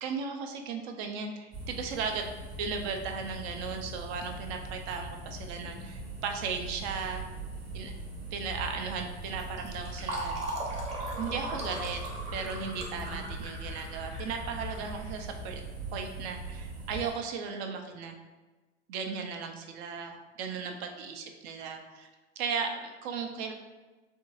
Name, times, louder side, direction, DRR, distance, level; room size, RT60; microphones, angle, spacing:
voice 1, 0.0-2.3 2.6-7.2 7.7-7.9 8.3-10.4 11.2-12.0 12.3-15.6 15.9-18.1 18.9-22.1 22.4-23.5, right 5 dB, 60° right, 4 dB, 0.6 m, -36 dB
sound 1, 1.5-17.1, right 1 dB, 45° right, 1.4 m, -41 dB
Fill (with liquid), 9.4-15.7, right 1 dB, 20° right, 0.8 m, -39 dB
3.7 x 2.7 x 2.4 m, 1.2 s
hypercardioid pair, 90°, 36 cm